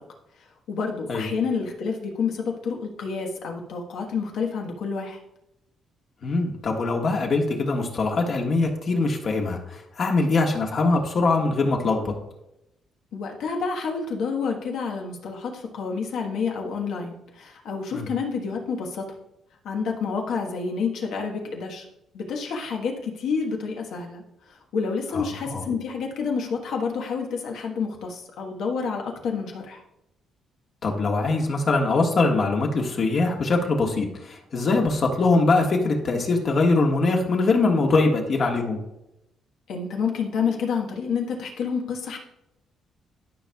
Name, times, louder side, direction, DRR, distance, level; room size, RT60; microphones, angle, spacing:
voice 1, 0.7-5.2 13.1-19.0 19.6-21.8 22.1-24.2 24.7-29.8 39.7-42.2, left 5 dB, 80° left, 1 dB, 1.3 m, -29 dB
voice 2, 6.2-12.1 17.9-18.1 25.1-25.7 30.8-38.8, left 3 dB, 50° left, 1 dB, 1.5 m, -22 dB
12.0 x 5.1 x 2.3 m, 0.86 s
cardioid pair, 90°, 0 cm